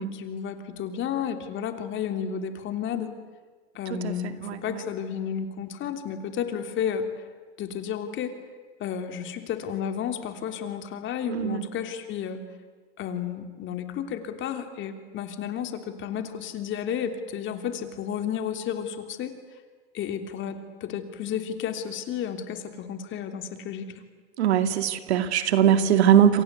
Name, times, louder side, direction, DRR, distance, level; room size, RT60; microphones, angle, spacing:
voice 1, 0.0-3.1 3.7-7.1 7.6-8.3 8.8-12.4 13.0-19.3 19.9-23.9, left 8 dB, 35° left, 7 dB, 3.3 m, -32 dB
voice 2, 4.4-4.8 11.3-11.7 24.4-26.4, right 9 dB, 80° right, 9 dB, 2.3 m, -21 dB
28.5 x 25.0 x 8.3 m, 1.4 s
hypercardioid pair, 115°, 32 cm